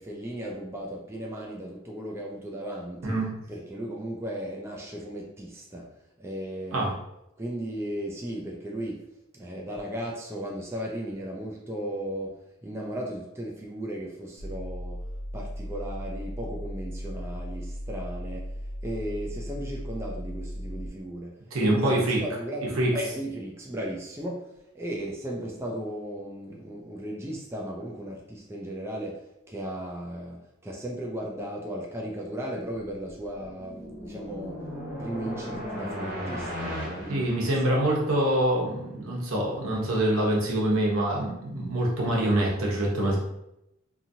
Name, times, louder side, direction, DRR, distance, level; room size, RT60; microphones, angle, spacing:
voice 1, 0.0-3.2 3.5-5.9 6.2-7.0 7.4-9.1 9.3-15.1 15.3-18.5 18.8-34.6 35.0-37.5, right 1 dB, 10° right, -2 dB, 0.3 m, -36 dB
sound 1, 14.4-20.9, equal, 75° left, 0.5 m, -36 dB
voice 2, 21.5-22.2 22.6-22.9 37.1-43.2, right 1 dB, 85° right, -2 dB, 0.9 m, -25 dB
sound 2, 33.2-38.1, equal, 45° right, 1.2 m, -36 dB
2.8 x 2.6 x 2.7 m, 0.84 s
head